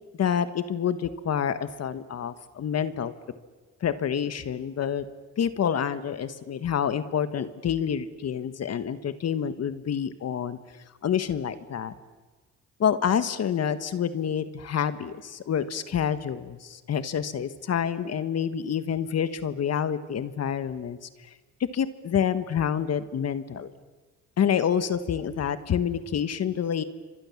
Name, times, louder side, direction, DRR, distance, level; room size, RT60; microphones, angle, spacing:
voice 1, 0.2-3.1 3.8-5.0 5.4-10.6 11.0-11.9 12.8-21.3 21.7-23.7 24.4-26.8, left 8 dB, 55° left, 12 dB, 1.5 m, -28 dB
30.0 x 25.5 x 7.3 m, 1.3 s
cardioid pair, 90°, 30 cm